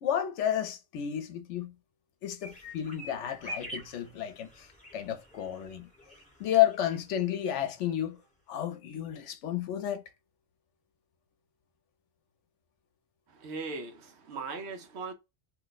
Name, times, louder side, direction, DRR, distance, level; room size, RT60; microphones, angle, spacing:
voice 1, 0.0-1.7 2.2-5.9 6.4-8.2 8.5-10.0, left 11 dB, 80° left, 0.9 m, -31 dB
sound 1, 2.4-7.6 7.8-7.9 8.2-8.3, equal, 5° left, 0.9 m, -46 dB
voice 2, 13.4-15.1, right 4 dB, 70° right, 1.0 m, -39 dB
2.7 x 2.2 x 3.9 m
omnidirectional pair, 1.2 m